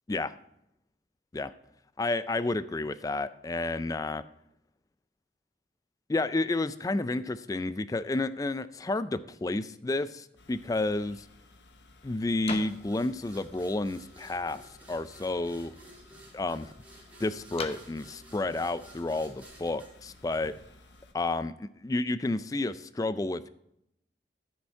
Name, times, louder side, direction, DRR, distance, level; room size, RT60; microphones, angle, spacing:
voice 1, 2.0-4.2 6.1-11.3 12.0-15.7 16.3-16.7 17.2-20.5 21.1-23.5, left 2 dB, 20° left, 14 dB, 0.3 m, -31 dB
sound 1, 10.4-21.1, left 2 dB, 85° left, 1.0 m, -57 dB
sound 2, 10.8-20.0, left 4 dB, 35° left, 0.8 m, -48 dB
sound 3, 12.5-21.0, right 1 dB, 10° right, 2.8 m, -54 dB
12.5 x 7.0 x 4.5 m, 0.79 s
head